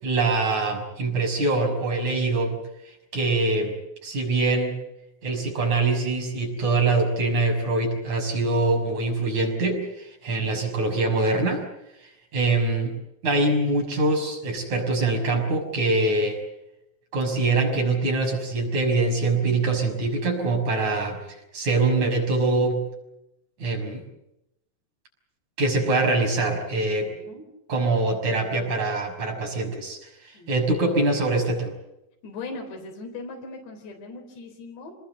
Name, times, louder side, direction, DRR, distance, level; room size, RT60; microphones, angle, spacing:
voice 1, 0.0-2.6 3.1-3.7 4.0-4.8 5.2-11.6 12.0-12.9 13.2-16.4 17.1-21.2 21.5-22.8 23.6-24.0 25.6-27.1 27.7-31.7, right 2 dB, 40° right, 1 dB, 7.2 m, -24 dB
voice 2, 27.0-27.4 30.3-30.5 32.2-34.9, left 3 dB, 80° left, 2 dB, 6.1 m, -39 dB
26.5 x 21.0 x 8.1 m, 0.87 s
omnidirectional pair, 4.9 m